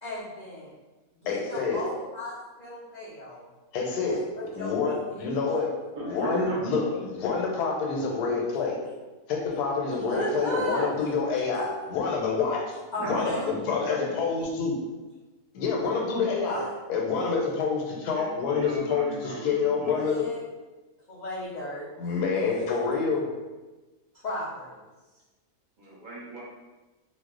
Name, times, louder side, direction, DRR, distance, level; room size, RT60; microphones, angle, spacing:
voice 1, 0.0-0.7 1.2-3.5 4.1-5.0 10.1-10.9 12.9-13.5 16.5-16.8 19.9-20.4 21.1-21.9 24.1-24.8, equal, 60° left, -9 dB, 0.4 m, -35 dB
voice 2, 1.3-1.8 3.7-4.2 4.5-5.7 6.0-8.8 9.3-12.8 13.1-14.7 15.5-16.6 16.9-20.2 22.0-23.3, left 5 dB, 90° left, -1 dB, 1.2 m, -27 dB
voice 3, 5.9-6.9 13.0-14.3 18.1-20.0 25.8-26.4, right 1 dB, 40° right, -5 dB, 0.7 m, -35 dB
2.7 x 2.1 x 3.6 m, 1.2 s
omnidirectional pair, 1.6 m